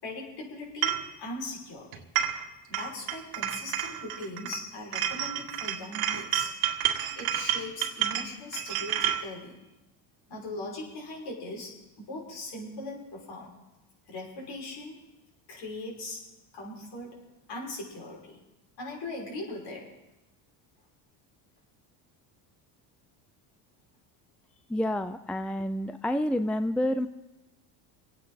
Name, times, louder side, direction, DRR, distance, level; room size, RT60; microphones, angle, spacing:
voice 1, 0.0-2.0 2.7-6.5 7.1-9.6 10.3-13.5 14.1-15.0 15.5-16.2 16.5-17.2 17.5-18.4 18.8-19.9, left 2 dB, 60° left, -2 dB, 6.0 m, -40 dB
sound 1, 0.8-1.1 1.9-2.5 2.7-4.6 4.9-9.2, right 11 dB, 75° right, 1.9 m, -30 dB
voice 2, 24.7-27.1, left 1 dB, 5° left, 10 dB, 0.4 m, -28 dB
26.5 x 9.2 x 4.2 m, 0.99 s
supercardioid pair, 105°, 47 cm